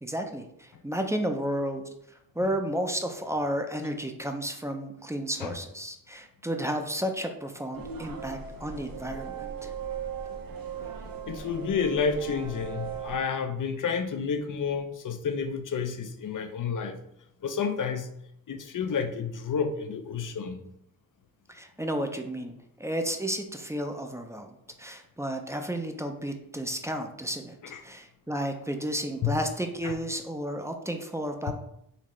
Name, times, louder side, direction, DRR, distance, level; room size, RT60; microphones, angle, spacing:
voice 1, 0.0-9.7 21.5-27.6 27.8-31.5, equal, 10° right, 4 dB, 0.5 m, -32 dB
sound 1, 7.7-13.2, right 6 dB, 70° right, 0.6 m, -38 dB
voice 2, 11.3-17.0 17.4-18.1 18.5-20.6 27.7-27.8 29.2-29.4 29.8-29.9 31.5-31.6, left 6 dB, 60° left, 7 dB, 0.6 m, -30 dB
4.0 x 3.2 x 3.1 m, 0.76 s
cardioid pair, 65°, 36 cm